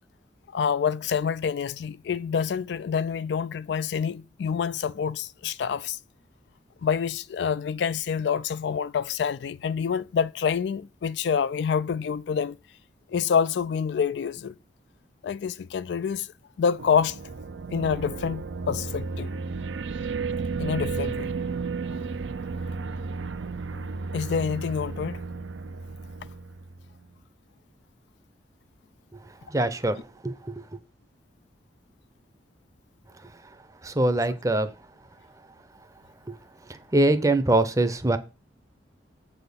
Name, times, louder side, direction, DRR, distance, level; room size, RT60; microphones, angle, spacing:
voice 1, 0.5-6.0 6.8-12.6 13.1-14.5 15.2-16.3 16.6-17.2 17.7-19.3 20.6-21.3 21.9-22.0 24.1-25.2, left 7 dB, 70° left, 0.3 m, -27 dB
sound 1, 16.8-27.0, right 4 dB, 85° right, 0.5 m, -33 dB
voice 2, 29.5-30.0 30.2-30.6 33.8-34.7 36.3-36.4 36.7-38.2, right 2 dB, 20° right, 0.6 m, -23 dB
7.6 x 4.2 x 6.9 m
head